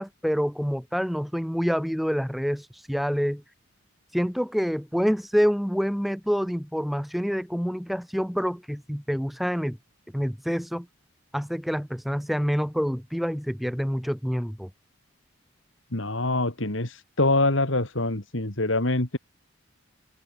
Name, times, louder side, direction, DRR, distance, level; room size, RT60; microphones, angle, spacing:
voice 1, 0.0-3.4 4.1-9.8 10.1-10.9 11.3-14.7, equal, ahead, 3.9 m, -27 dB
voice 2, 15.9-19.2, left 2 dB, 70° left, 2.9 m, -25 dB
open air
head